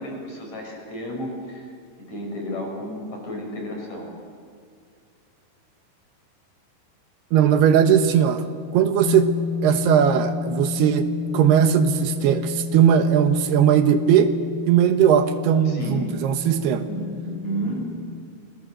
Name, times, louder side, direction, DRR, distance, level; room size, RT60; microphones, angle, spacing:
voice 1, 0.0-1.7 2.0-4.1 15.6-16.0 16.9-17.8, equal, 45° left, 1 dB, 6.8 m, -32 dB
voice 2, 7.3-8.4 8.7-9.3 9.6-11.1 11.3-14.3 14.7-16.9, right 9 dB, 75° right, 8 dB, 3.1 m, -18 dB
sound 1, 9.0-18.1, left 6 dB, 75° left, 0.9 m, -31 dB
28.5 x 21.5 x 7.8 m, 2.2 s
omnidirectional pair, 4.7 m